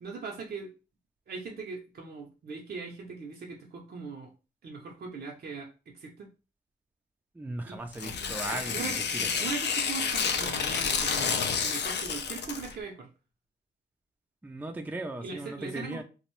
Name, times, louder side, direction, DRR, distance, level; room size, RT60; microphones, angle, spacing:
voice 1, 0.0-0.7 1.3-4.3 4.6-6.3 7.6-7.8 8.2-13.1 15.2-16.0, right 4 dB, 60° right, 0.6 m, -40 dB
voice 2, 7.4-8.7 9.4-9.5 14.4-16.0, right 2 dB, 10° right, 0.4 m, -37 dB
Tearing, 7.9-12.7, left 6 dB, 75° left, 0.4 m, -30 dB
2.5 x 2.0 x 3.0 m
cardioid pair, 65°, 18 cm